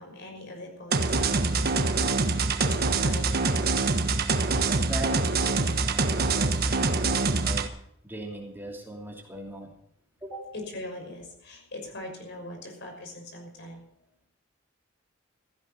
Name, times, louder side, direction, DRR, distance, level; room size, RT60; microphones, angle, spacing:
voice 1, 0.0-4.0 10.5-13.8, left 1 dB, 60° left, 2 dB, 6.0 m, -41 dB
sound 1, 0.9-7.7, right 3 dB, 50° right, 1.3 m, -25 dB
voice 2, 4.6-7.7 8.0-9.7 10.2-10.5, right 1 dB, 10° right, -1 dB, 2.9 m, -39 dB
16.5 x 15.5 x 4.4 m, 0.73 s
head